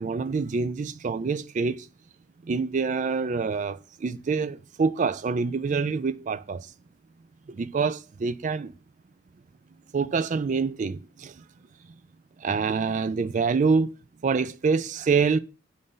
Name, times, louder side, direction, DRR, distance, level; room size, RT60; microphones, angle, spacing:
voice 1, 0.0-1.9 2.5-6.7 7.5-8.7 9.9-11.3 12.4-13.9 14.2-15.4, right 5 dB, 35° right, 0.3 m, -26 dB
7.8 x 2.6 x 5.4 m
head